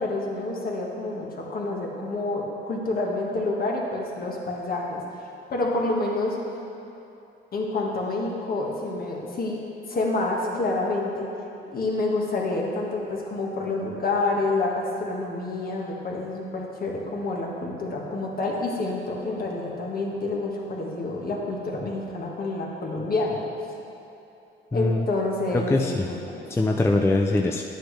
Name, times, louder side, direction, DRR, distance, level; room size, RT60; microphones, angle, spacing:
voice 1, 0.0-6.4 7.5-9.6 9.9-11.3 11.7-23.4 24.7-25.8 26.0-26.4, left 2 dB, 45° left, -2 dB, 1.7 m, -28 dB
voice 2, 24.7-25.1 25.5-26.1 26.5-27.6, left 2 dB, 15° left, 1 dB, 0.4 m, -22 dB
9.9 x 9.0 x 3.3 m, 2.8 s
cardioid pair, 90°, 20 cm